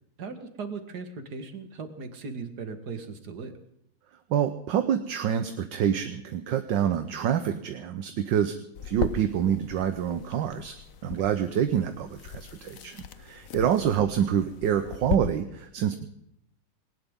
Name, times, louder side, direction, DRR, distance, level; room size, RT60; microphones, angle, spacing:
voice 1, 0.2-3.5 11.0-11.3, right 4 dB, 50° right, 7 dB, 2.2 m, -38 dB
voice 2, 4.3-8.6 8.8-10.7 11.0-16.1, right 9 dB, 65° right, 8 dB, 1.5 m, -27 dB
sound 1, 8.7-15.2, left 8 dB, 60° left, 0.9 m, -38 dB
20.0 x 19.0 x 3.7 m, 0.78 s
omnidirectional pair, 2.3 m